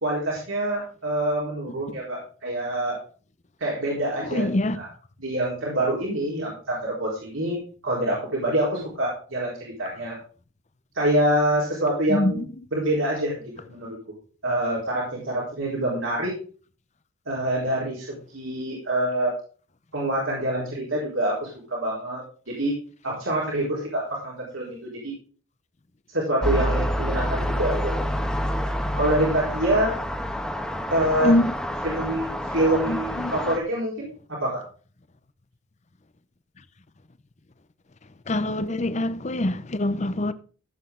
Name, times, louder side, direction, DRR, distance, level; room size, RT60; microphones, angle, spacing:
voice 1, 0.0-3.0 3.6-4.5 4.7-4.9 5.2-7.6 7.8-10.2 10.9-12.4 12.7-13.4 13.7-14.0 14.4-16.3 17.3-19.3 19.9-22.7 23.0-25.1 26.1-27.9 28.7-29.9 30.9-31.3 31.8-34.1 34.4-34.6, right 1 dB, 80° right, 4.3 m, -26 dB
voice 2, 4.3-4.8 12.1-12.4 31.2-31.5 32.9-33.3 38.3-40.3, left 1 dB, 35° left, 0.7 m, -24 dB
sound 1, 26.4-33.6, equal, 5° left, 1.2 m, -28 dB
15.5 x 8.1 x 3.8 m
head